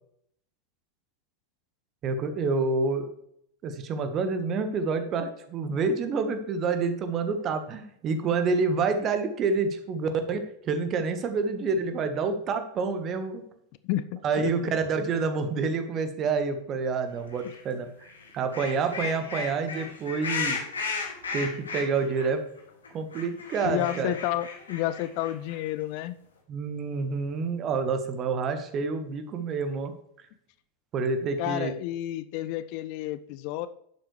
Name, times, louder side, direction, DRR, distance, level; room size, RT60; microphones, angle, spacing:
voice 1, 2.0-3.1 3.6-10.4 10.6-13.4 14.2-20.6 21.3-22.4 22.9-24.1 26.5-29.9 30.9-31.7, right 4 dB, 30° right, 8 dB, 1.3 m, -28 dB
voice 2, 13.8-14.7 23.6-26.1 31.4-33.7, left 14 dB, 45° left, 14 dB, 0.4 m, -30 dB
sound 1, 17.4-17.6 18.0-22.3 22.6-22.7 22.8-25.7, left 4 dB, 70° left, 2.1 m, -35 dB
11.0 x 7.9 x 3.2 m, 0.71 s
figure-of-eight pair, 90°, 0 cm